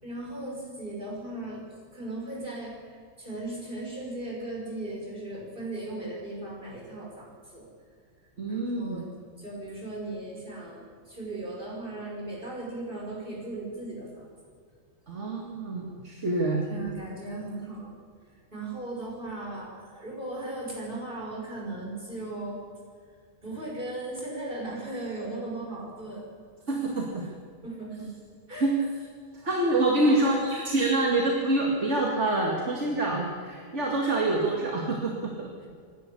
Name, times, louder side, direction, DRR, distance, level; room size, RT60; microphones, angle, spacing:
voice 1, 0.0-7.7 8.5-9.1 9.4-14.3 16.7-17.9 18.5-22.6 23.4-26.3 27.2-27.3 27.6-28.1 28.5-28.7 30.0-30.7, right 2 dB, 40° right, -3 dB, 5.8 m, -37 dB
voice 2, 8.4-9.0 15.1-16.7 26.7-27.2 28.6-28.8 29.3-35.5, right 2 dB, 55° right, -1 dB, 2.5 m, -26 dB
25.5 x 12.5 x 8.4 m, 2.1 s
omnidirectional pair, 1.4 m